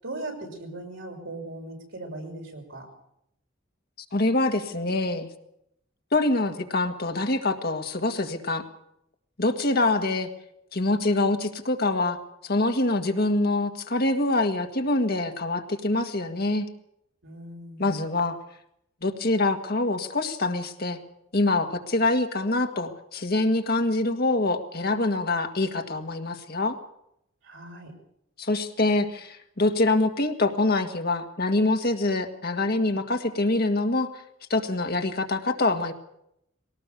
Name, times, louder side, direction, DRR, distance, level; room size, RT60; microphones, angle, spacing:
voice 1, 0.0-2.9 17.2-18.0 27.4-27.9, right 2 dB, 65° right, 2 dB, 6.4 m, -38 dB
voice 2, 4.1-5.3 6.1-8.6 9.4-10.3 10.7-16.7 17.8-18.4 19.0-21.0 21.3-26.8 28.4-34.1 34.5-35.9, left 2 dB, 50° left, 5 dB, 1.9 m, -25 dB
21.5 x 18.0 x 6.9 m, 0.78 s
head